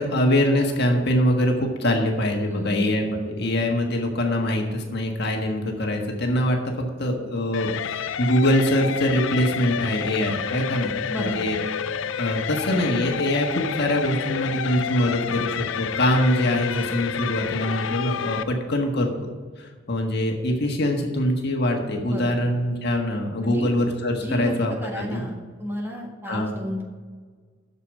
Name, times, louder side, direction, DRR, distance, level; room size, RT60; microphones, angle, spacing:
voice 1, 0.0-11.6 12.2-19.3 19.6-25.2 26.3-26.5, left 1 dB, 60° left, 2 dB, 1.5 m, -23 dB
voice 2, 2.5-2.9 11.1-11.5 22.1-22.4 23.4-23.7 24.2-26.8, equal, 10° right, 0 dB, 1.7 m, -32 dB
sound 1, 7.5-18.4, left 7 dB, 75° left, 0.5 m, -29 dB
8.2 x 6.8 x 7.6 m, 1.5 s
head